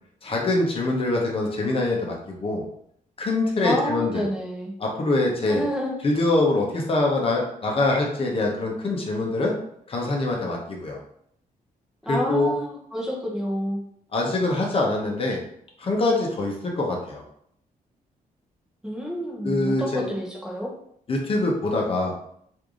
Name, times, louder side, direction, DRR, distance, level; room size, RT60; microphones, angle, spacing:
voice 1, 0.2-2.6 3.2-4.2 4.8-5.6 6.0-9.5 9.9-11.0 12.1-12.5 14.1-15.4 15.8-17.2 19.4-20.1 21.1-22.1, left 2 dB, 40° left, -1 dB, 0.7 m, -24 dB
voice 2, 3.6-4.7 5.5-6.0 12.1-13.8 18.8-20.7, equal, 5° right, -3 dB, 0.7 m, -29 dB
3.2 x 2.6 x 3.6 m, 0.68 s
wide cardioid pair, 145°, 15 cm